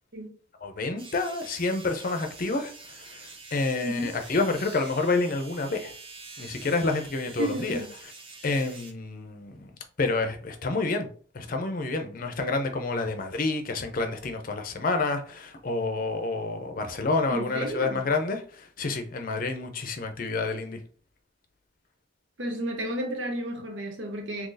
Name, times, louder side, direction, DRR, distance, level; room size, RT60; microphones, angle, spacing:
voice 1, 0.6-5.9 6.4-7.8 8.4-9.7 10.0-11.1 11.3-20.8, left 3 dB, 45° left, 0.6 m, -29 dB
sound 1, 1.0-8.9, right 4 dB, 25° right, 0.5 m, -46 dB
voice 2, 3.8-4.2 7.4-7.9 17.3-18.0 22.4-24.5, equal, 65° right, 0.8 m, -32 dB
2.8 x 2.6 x 3.9 m
head